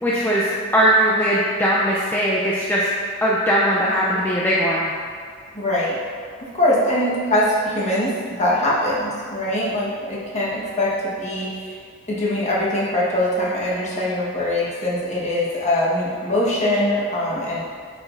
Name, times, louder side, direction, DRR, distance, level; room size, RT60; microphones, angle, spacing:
voice 1, 0.0-2.9 3.2-4.9, equal, 10° left, -6 dB, 0.4 m, -19 dB
voice 2, 5.5-6.0 6.4-11.8 12.1-17.6, left 1 dB, 30° left, -6 dB, 1.2 m, -22 dB
8.2 x 4.9 x 2.5 m, 2.1 s
head